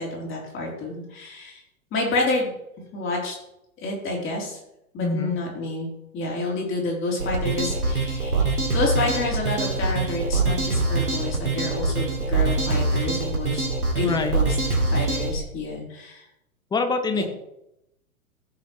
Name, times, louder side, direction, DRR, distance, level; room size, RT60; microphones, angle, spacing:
voice 1, 0.0-1.6 1.9-2.5 2.9-3.3 3.8-4.6 4.9-5.9 6.1-13.7 13.9-14.6 14.9-16.2 17.1-17.2, left 2 dB, 30° left, -2 dB, 3.6 m, -29 dB
voice 2, 5.0-5.3 14.0-14.4 16.7-17.2, left 3 dB, 10° left, 8 dB, 0.7 m, -25 dB
sound 1, 7.2-15.3, right 3 dB, 90° right, 2.3 m, -24 dB
15.5 x 6.3 x 3.2 m, 0.85 s
figure-of-eight pair, 105°, 43 cm